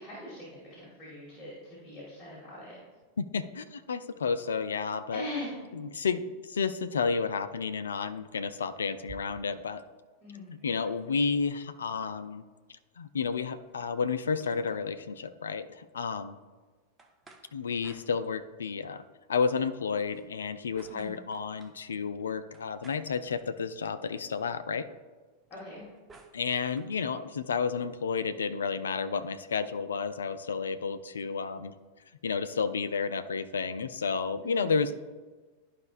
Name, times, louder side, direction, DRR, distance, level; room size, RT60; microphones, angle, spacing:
voice 1, 0.0-2.8 5.1-5.6 10.2-10.5 20.9-21.1 25.5-25.9 34.4-34.7, left 1 dB, 15° left, -8 dB, 2.2 m, -41 dB
voice 2, 3.2-5.2 5.7-9.8 10.5-12.4 12.7-16.4 17.5-19.0 19.3-24.9 26.3-31.7 32.2-34.9, left 5 dB, 70° left, 11 dB, 0.4 m, -31 dB
sound 1, 8.2-9.8 10.2-10.3 10.5-11.6 13.2-15.1 17.0-18.7 20.0-21.8 22.5-23.9 25.4-27.0, right 3 dB, 15° right, 0.8 m, -57 dB
11.5 x 5.0 x 2.5 m, 1.4 s
figure-of-eight pair, 90°, 0 cm